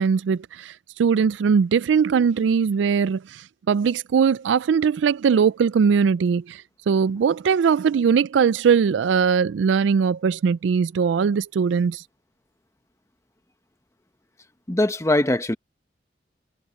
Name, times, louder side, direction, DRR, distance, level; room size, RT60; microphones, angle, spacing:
voice 1, 0.0-12.0, right 6 dB, 90° right, 0.3 m, -20 dB
voice 2, 14.7-15.6, left 1 dB, 15° left, 1.0 m, -21 dB
head